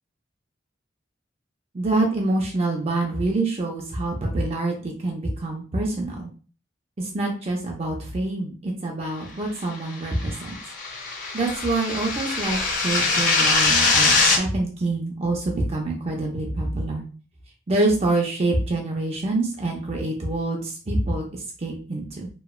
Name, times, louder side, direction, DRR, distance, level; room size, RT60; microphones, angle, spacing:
voice 1, 1.7-6.3 7.0-10.6 11.3-17.0 17.7-22.3, right 2 dB, 35° right, 0 dB, 0.5 m, -26 dB
sound 1, 9.9-14.4, left 3 dB, 45° left, 0.6 m, -22 dB
2.9 x 2.2 x 2.3 m, 0.38 s
head